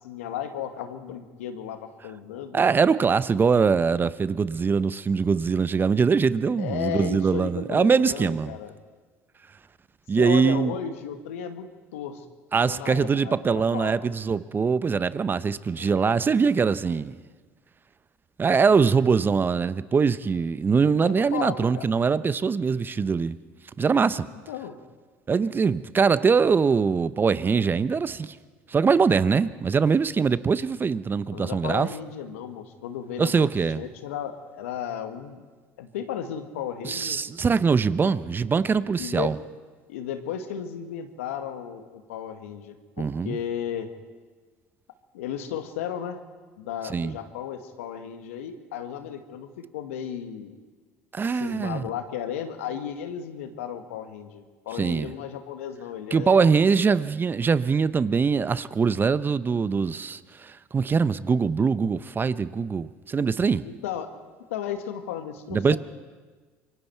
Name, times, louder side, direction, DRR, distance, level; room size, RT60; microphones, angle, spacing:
voice 1, 0.0-2.6 6.6-8.7 10.2-12.2 12.6-13.9 15.8-16.2 20.9-21.9 24.5-24.8 31.3-33.5 33.8-35.5 35.8-37.2 38.0-38.1 39.0-39.3 39.9-43.9 45.1-46.2 46.6-50.6 51.3-57.0 63.6-64.1 64.5-65.8, left 9 dB, 85° left, 1.7 m, -34 dB
voice 2, 2.5-8.5 10.1-10.8 12.5-17.1 18.4-23.4 23.8-24.3 25.3-28.4 28.7-31.9 33.2-33.8 36.8-39.4 43.0-43.4 46.9-47.2 51.1-51.8 54.8-55.1 56.1-63.7 65.5-65.8, right 5 dB, 30° right, 0.8 m, -22 dB
26.5 x 23.5 x 4.6 m
hypercardioid pair, 75°, 7 cm